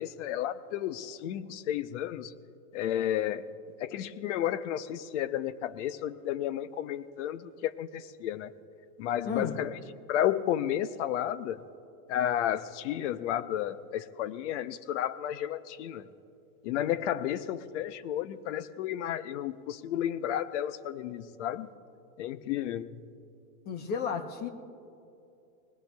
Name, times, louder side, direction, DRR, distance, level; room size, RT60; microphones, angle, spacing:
voice 1, 0.0-2.3 2.7-3.5 3.8-8.5 9.0-9.7 10.1-11.6 12.1-16.0 16.6-21.7 22.2-23.0, left 11 dB, 50° left, 14 dB, 0.7 m, -32 dB
voice 2, 9.2-9.6 23.7-24.5, left 6 dB, 20° left, 8 dB, 0.8 m, -32 dB
22.0 x 19.5 x 2.3 m, 2.7 s
supercardioid pair, 145°, 46 cm